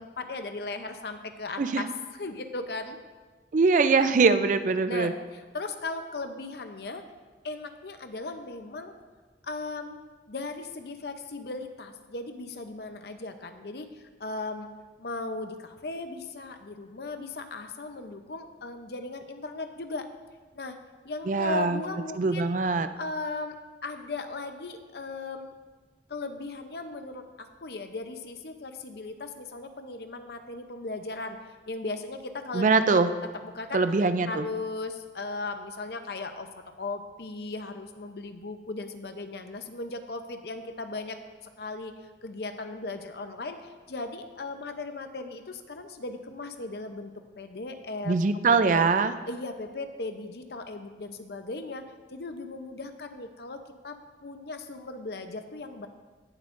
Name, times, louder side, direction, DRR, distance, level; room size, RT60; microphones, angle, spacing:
voice 1, 0.0-3.0 4.9-7.0 7.4-8.9 9.4-10.0 10.3-14.7 15.0-20.1 20.5-20.8 21.0-22.5 23.0-23.6 23.8-25.5 26.1-31.4 31.7-32.7 32.9-33.0 33.4-33.8 34.2-48.9 49.3-55.9, left 3 dB, 60° left, 7 dB, 0.7 m, -37 dB
voice 2, 3.5-5.1 21.3-21.8 22.2-22.9 32.5-33.1 33.7-34.5 48.1-49.1, right 4 dB, 45° right, 10 dB, 0.4 m, -22 dB
18.0 x 7.3 x 2.6 m, 1.3 s
head